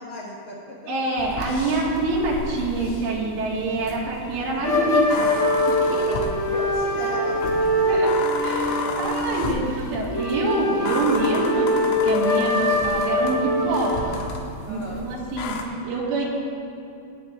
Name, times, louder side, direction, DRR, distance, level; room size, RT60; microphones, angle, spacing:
voice 1, 0.0-0.9 6.1-7.9 14.6-15.1, left 1 dB, 70° left, -5 dB, 2.2 m, -36 dB
voice 2, 0.9-5.4 5.7-6.2 7.9-8.1 8.4-14.1 14.7-15.6 15.8-16.3, right 2 dB, 90° right, -3 dB, 4.4 m, -26 dB
sound 1, 1.2-15.6, left 4 dB, 85° left, 3.5 m, -34 dB
sound 2, 4.6-14.2, left 1 dB, 25° left, 1.5 m, -23 dB
20.5 x 9.2 x 3.4 m, 2.6 s
omnidirectional pair, 5.5 m